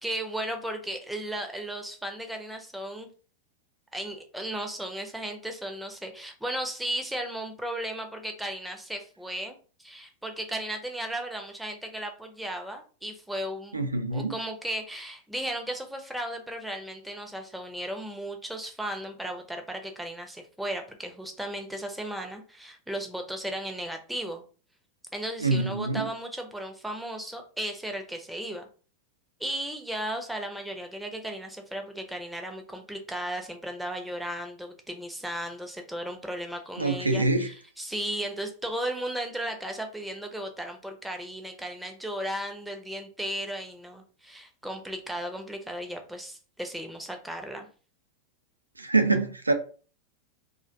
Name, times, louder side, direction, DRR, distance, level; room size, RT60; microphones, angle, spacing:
voice 1, 0.0-3.1 3.9-13.8 14.1-24.4 25.1-28.6 29.4-47.7, right 1 dB, 5° right, 0.5 m, -35 dB
voice 2, 13.7-14.3 25.4-26.0 36.8-37.5 48.8-49.5, right 3 dB, 80° right, 0.3 m, -25 dB
2.4 x 2.1 x 2.4 m
figure-of-eight pair, 90°, 0 cm